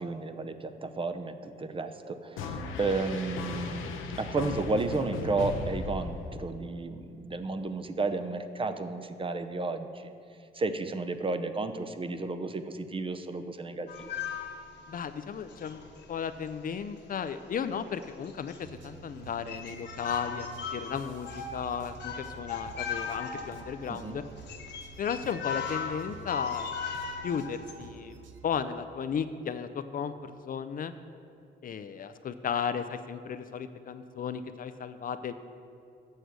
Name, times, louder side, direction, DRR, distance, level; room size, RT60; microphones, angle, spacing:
voice 1, 0.0-3.9 4.2-10.1 10.5-14.2 23.9-24.2, right 3 dB, 25° right, 9 dB, 0.6 m, -32 dB
sound 1, 2.4-6.7, left 4 dB, 85° left, 0.8 m, -37 dB
sound 2, 13.9-15.0 15.5-16.0 16.4-16.5 17.6-17.7 18.0-18.8 19.1-19.2 19.5-27.7, left 6 dB, 60° left, 1.2 m, -38 dB
voice 2, 14.9-15.8 16.1-18.5 18.8-24.2 25.0-26.7 27.2-30.9 31.6-35.3, left 7 dB, 45° left, 10 dB, 0.4 m, -35 dB
sound 3, 18.6-28.6, right 4 dB, 70° right, 0.7 m, -50 dB
8.1 x 6.7 x 6.3 m, 2.5 s
cardioid pair, 90°, 20 cm